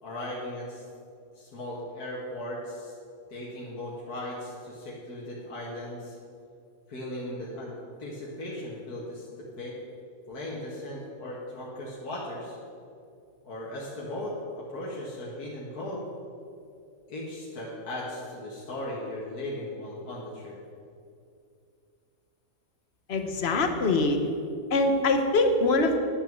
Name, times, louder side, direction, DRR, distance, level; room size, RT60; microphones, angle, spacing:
voice 1, 0.0-0.8 1.4-2.9 3.3-6.1 6.9-7.7 8.0-9.8 10.3-12.6 13.4-16.0 17.1-20.6, left 1 dB, 70° left, -5 dB, 2.1 m, -37 dB
voice 2, 23.1-24.2 24.7-26.0, left 2 dB, 45° left, 6 dB, 1.1 m, -23 dB
11.0 x 6.2 x 7.4 m, 2.4 s
omnidirectional pair, 1.7 m